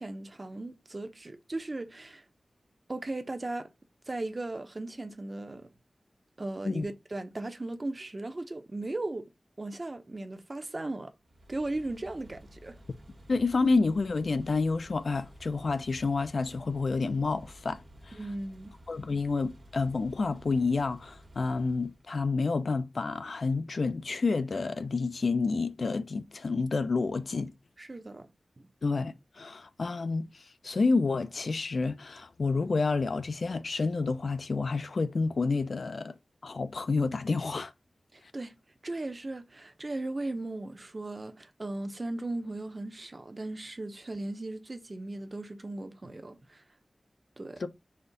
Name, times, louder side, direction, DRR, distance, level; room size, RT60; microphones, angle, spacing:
voice 1, 0.0-2.2 2.9-3.7 4.1-5.7 6.4-9.3 9.6-11.1 11.5-12.8 18.1-18.7 27.8-28.3 28.6-28.7 38.1-38.6 38.8-46.6 47.4-47.6, right 2 dB, 40° right, 0.7 m, -37 dB
sound 1, 11.2-22.1, equal, 60° right, 1.3 m, -53 dB
voice 2, 13.3-17.8 18.1-18.2 18.9-27.5 28.8-30.3 30.6-36.1 36.4-37.7 47.6-47.7, left 4 dB, 70° left, 0.4 m, -29 dB
4.2 x 2.6 x 3.8 m
wide cardioid pair, 70°, 0 cm